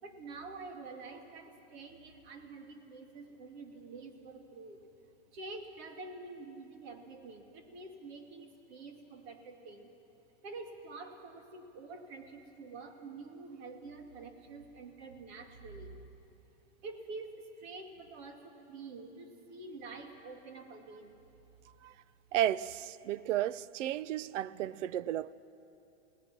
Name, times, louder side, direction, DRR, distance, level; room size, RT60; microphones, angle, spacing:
voice 1, 0.0-4.8 5.3-9.9 10.4-16.0 16.8-21.2, right 3 dB, 55° right, 2.4 m, -47 dB
voice 2, 22.3-25.3, right 12 dB, 85° right, 0.6 m, -33 dB
29.0 x 18.5 x 6.0 m
supercardioid pair, 165°, 36 cm